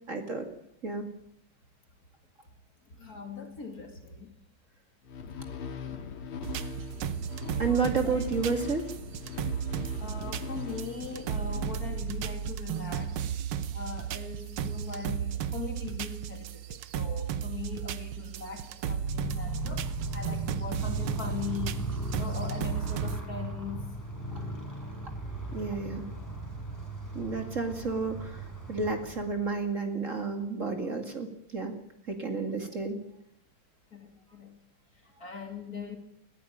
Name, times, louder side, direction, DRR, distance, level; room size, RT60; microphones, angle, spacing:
voice 1, 0.1-0.4 0.8-1.1 7.6-8.8 24.4-24.5 25.5-26.1 27.1-28.4 28.7-31.8 32.1-33.0, right 4 dB, 35° right, 2.5 m, -31 dB
voice 2, 2.8-4.3 7.6-8.2 10.0-13.2 13.7-23.9 27.4-27.6 32.6-32.7 33.9-34.6 34.9-36.0, left 5 dB, 45° left, 3.2 m, -40 dB
sound 1, 5.1-12.5, left 6 dB, 85° left, 2.4 m, -41 dB
sound 2, 6.4-23.2, right 8 dB, 80° right, 1.8 m, -34 dB
Motorcycle, 19.0-29.6, right 1 dB, 10° left, 4.4 m, -37 dB
20.5 x 16.0 x 8.8 m
omnidirectional pair, 2.3 m